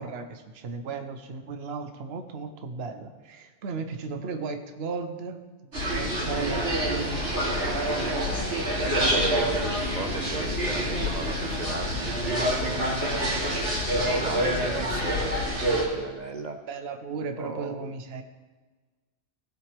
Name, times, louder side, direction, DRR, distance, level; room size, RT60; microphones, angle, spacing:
voice 1, 0.0-5.4 5.9-7.3 16.7-18.2, right 4 dB, 65° right, 7 dB, 1.0 m, -35 dB
sound 1, 5.7-15.8, right 1 dB, 80° right, 3.4 m, -27 dB
sound 2, 5.8-15.5, left 8 dB, 80° left, 1.1 m, -36 dB
voice 2, 8.8-12.8 13.2-13.5 13.9-15.3 15.7-16.6 17.4-17.9, right 3 dB, 45° right, 6 dB, 0.6 m, -36 dB
17.5 x 8.1 x 3.4 m, 1.3 s
omnidirectional pair, 1.2 m